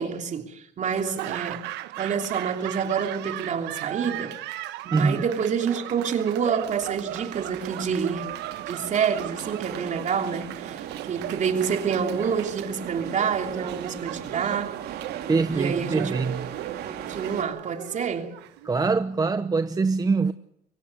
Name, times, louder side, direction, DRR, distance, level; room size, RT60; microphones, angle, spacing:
voice 1, 0.0-1.7 2.0-4.4 4.8-8.3 8.7-14.8 15.5-16.1 16.8-18.4, right 6 dB, 45° right, 3.1 m, -28 dB
Laughter / Applause, 0.9-19.0, right 15 dB, 90° right, 1.3 m, -37 dB
voice 2, 4.9-5.2 15.3-16.5 18.6-20.3, right 4 dB, 20° right, 0.9 m, -23 dB
sound 1, 6.6-17.4, right 9 dB, 70° right, 3.5 m, -38 dB
23.5 x 16.5 x 8.4 m
cardioid pair, 110°, 17 cm